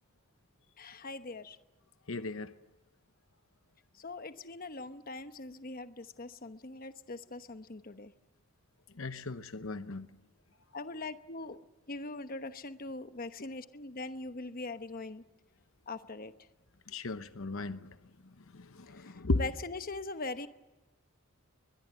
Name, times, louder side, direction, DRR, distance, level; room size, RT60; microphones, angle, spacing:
voice 1, 0.8-1.6 3.9-8.1 10.7-11.6 11.9-15.2 15.9-16.3 18.9-20.5, left 3 dB, 40° left, 1.0 m, -41 dB
voice 2, 2.1-2.5 9.0-10.1 16.9-17.9 18.5-19.4, left 2 dB, 65° left, 0.9 m, -35 dB
22.0 x 21.5 x 8.8 m
head